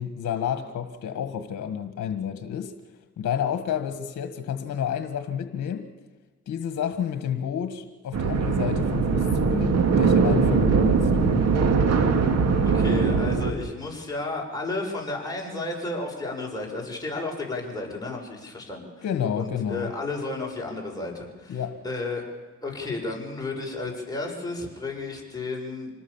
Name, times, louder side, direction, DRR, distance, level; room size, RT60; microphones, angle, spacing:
voice 1, 0.0-2.7 3.2-5.9 6.5-11.4 19.0-19.9 21.5-21.8, left 8 dB, 60° left, 9 dB, 1.6 m, -30 dB
sound 1, 8.1-13.5, right 5 dB, 55° right, 2.7 m, -21 dB
voice 2, 12.6-19.1 19.4-22.2 22.6-25.9, left 2 dB, 10° left, -1 dB, 7.5 m, -32 dB
26.5 x 19.5 x 7.3 m, 1.4 s
cardioid pair, 90°, 30 cm